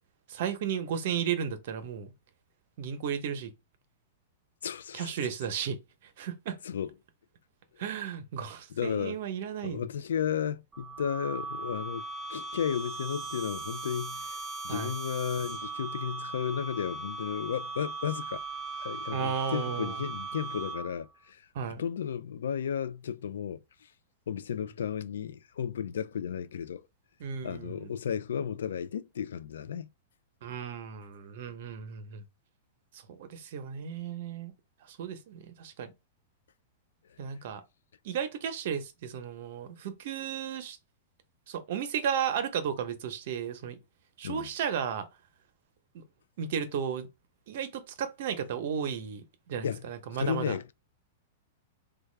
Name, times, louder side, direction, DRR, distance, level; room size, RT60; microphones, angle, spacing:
voice 1, 0.3-2.1 2.8-3.5 4.9-5.8 6.2-6.6 7.8-9.8 14.7-14.9 19.1-20.0 21.5-21.8 27.2-27.9 30.4-32.2 33.1-34.5 34.9-35.9 37.2-37.6 38.0-40.8 41.5-43.8 44.2-45.1 45.9-46.0 46.4-47.1 47.5-50.6, right 8 dB, 60° right, 0.7 m, -34 dB
voice 2, 4.6-5.3 6.6-6.9 8.7-9.2 9.6-12.0 12.3-18.4 18.7-21.5 21.8-23.6 24.3-26.9 27.4-29.9 44.2-44.5 49.6-49.8 50.1-50.7, left 8 dB, 85° left, 0.3 m, -34 dB
sound 1, 10.7-21.1, right 4 dB, 15° right, 0.7 m, -38 dB
3.4 x 2.3 x 3.2 m
hypercardioid pair, 140°, 0 cm